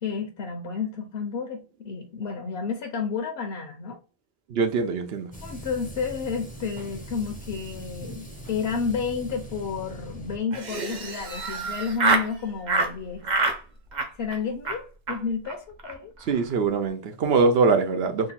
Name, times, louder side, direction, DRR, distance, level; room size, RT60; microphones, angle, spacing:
voice 1, 0.0-4.0 5.4-13.3 14.2-16.1, left 5 dB, 75° left, 0.9 m, -31 dB
voice 2, 4.5-5.3 16.3-18.3, right 4 dB, 80° right, 0.9 m, -23 dB
sound 1, 5.3-10.4, right 1 dB, 10° left, 0.6 m, -41 dB
Laughter, 10.5-12.3 12.7-12.9 13.2-13.6 13.9-14.4 14.6-14.8 15.1-15.2 15.4-15.5 15.8-15.9 16.2-16.5, right 3 dB, 50° right, 0.7 m, -26 dB
3.8 x 2.3 x 4.1 m
omnidirectional pair, 1.0 m